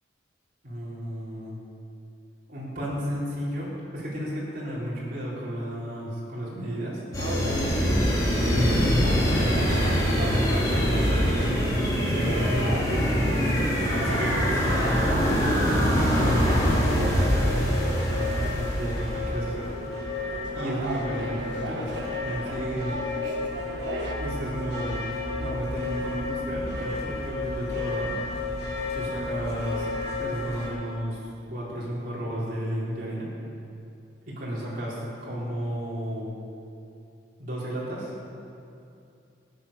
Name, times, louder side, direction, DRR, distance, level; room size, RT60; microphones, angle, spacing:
voice 1, 0.6-1.6 2.5-7.0 7.9-13.2 13.7-15.4 15.8-19.7 20.5-23.0 24.2-25.1 25.4-28.1 28.9-29.9 30.2-33.3 34.3-36.3 37.4-38.1, equal, 45° right, -8 dB, 3.7 m, -33 dB
sound 1, 7.1-19.5, equal, 20° left, 2.8 m, -24 dB
sound 2, 7.2-24.1, right 1 dB, 75° right, 1.6 m, -37 dB
sound 3, 16.1-30.7, left 3 dB, 55° left, 3.6 m, -33 dB
15.5 x 9.5 x 6.8 m, 2.6 s
head